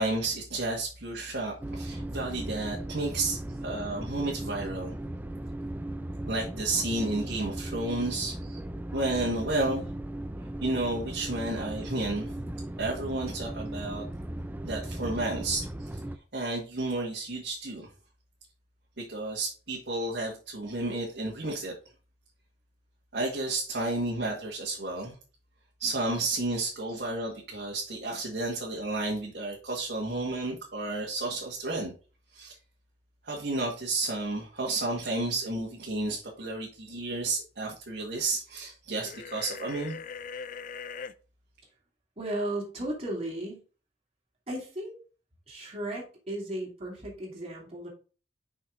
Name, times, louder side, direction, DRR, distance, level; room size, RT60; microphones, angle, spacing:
voice 1, 0.0-5.0 6.3-8.4 8.9-9.9 10.6-12.3 12.8-14.0 14.6-16.0 16.3-17.9 19.0-21.7 23.1-25.2 25.8-31.9 32.3-32.6 33.2-40.0, right 2 dB, 60° right, -3 dB, 1.8 m, -32 dB
sound 1, 1.6-16.2, right 1 dB, 10° right, 0.4 m, -37 dB
sound 2, 39.0-41.1, left 6 dB, 45° left, 0.4 m, -40 dB
voice 2, 42.2-43.6 44.5-45.0 45.5-47.9, right 1 dB, 35° right, -4 dB, 2.8 m, -35 dB
6.1 x 5.6 x 3.8 m, 0.35 s
head